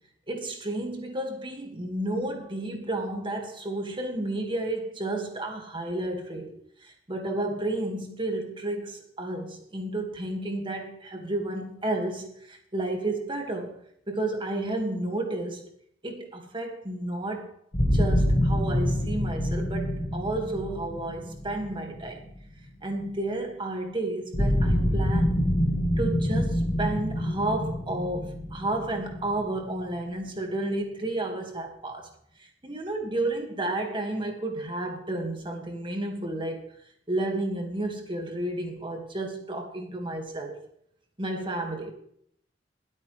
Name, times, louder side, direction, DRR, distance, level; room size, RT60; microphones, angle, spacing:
voice 1, 0.3-6.5 6.8-13.8 14.1-15.7 16.0-17.5 17.9-22.2 22.8-25.5 26.0-32.1 32.6-36.7 37.1-40.6 41.2-41.9, right 2 dB, 25° right, 2.1 m, -31 dB
sound 1, 17.7-22.7 24.3-30.0, equal, 35° left, 1.7 m, -26 dB
21.5 x 8.6 x 3.4 m
head